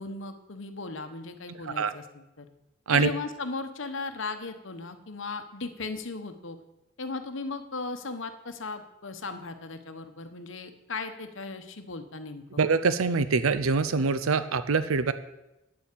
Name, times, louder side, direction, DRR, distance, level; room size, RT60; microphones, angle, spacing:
voice 1, 0.0-2.5 2.9-6.6 7.0-12.6, left 3 dB, 60° left, 7 dB, 1.1 m, -37 dB
voice 2, 12.6-15.1, right 4 dB, 80° right, 13 dB, 0.6 m, -24 dB
9.5 x 7.1 x 8.5 m, 0.94 s
head